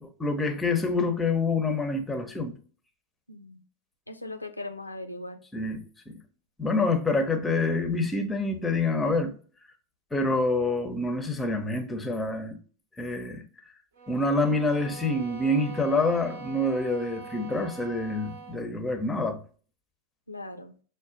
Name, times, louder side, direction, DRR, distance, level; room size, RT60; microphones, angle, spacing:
voice 1, 0.0-2.5 5.5-5.8 6.6-9.3 10.1-12.6 13.0-13.4 14.1-19.4, left 2 dB, 10° left, 0.6 m, -27 dB
voice 2, 3.3-3.6 4.1-5.4 20.3-20.7, left 2 dB, 85° left, 0.4 m, -39 dB
sound 1, 13.9-18.7, right 5 dB, 60° right, 0.7 m, -43 dB
6.0 x 2.2 x 2.4 m
figure-of-eight pair, 90°, 0 cm